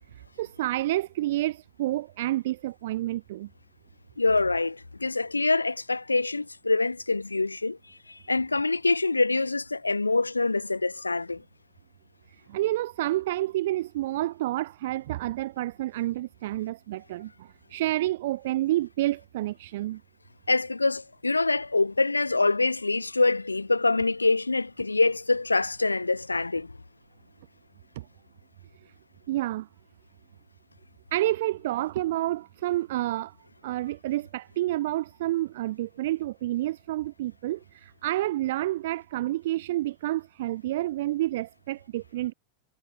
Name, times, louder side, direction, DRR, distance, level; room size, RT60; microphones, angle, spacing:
voice 1, 0.4-3.5 12.5-20.0 28.0-28.1 29.3-29.7 31.1-33.4 33.6-42.3, right 15 dB, 55° right, 7.2 m, -29 dB
voice 2, 4.2-11.4 20.5-26.7, left 3 dB, 80° left, 3.4 m, -25 dB
figure-of-eight pair, 90°, 0 cm